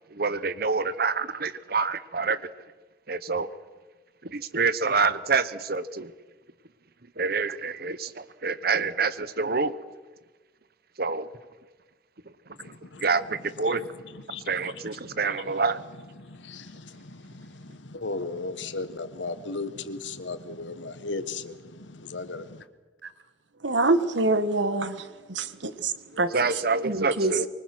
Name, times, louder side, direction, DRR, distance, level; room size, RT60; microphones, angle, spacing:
voice 1, 0.1-2.4 3.1-3.5 4.2-6.1 7.2-9.8 11.0-11.3 13.0-13.8 14.5-15.8 26.3-27.5, right 4 dB, 55° right, 15 dB, 1.0 m, -27 dB
voice 2, 12.6-22.6 26.1-26.4 27.2-27.4, left 3 dB, 85° left, 11 dB, 1.5 m, -38 dB
voice 3, 23.6-25.0 25.3-26.3 26.8-27.3, right 2 dB, 80° right, 11 dB, 1.5 m, -25 dB
24.5 x 24.0 x 6.2 m, 1.3 s
head